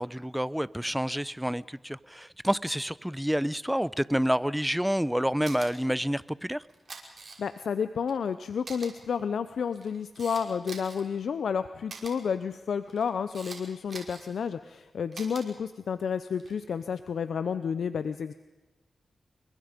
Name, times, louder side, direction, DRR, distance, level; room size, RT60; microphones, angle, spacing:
voice 1, 0.0-6.6, equal, 5° right, 19 dB, 0.8 m, -28 dB
Camera, 5.4-5.7 6.7-7.6 8.1-8.2 8.6-8.9 9.6-11.0 11.9-12.1 12.9-13.6 13.9-14.3 15.1-15.4 16.3-16.6, right 4 dB, 60° right, 5.7 m, -43 dB
voice 2, 7.4-18.3, left 6 dB, 85° left, 11 dB, 0.8 m, -31 dB
29.5 x 23.0 x 5.2 m, 1.1 s
cardioid pair, 55°, 0 cm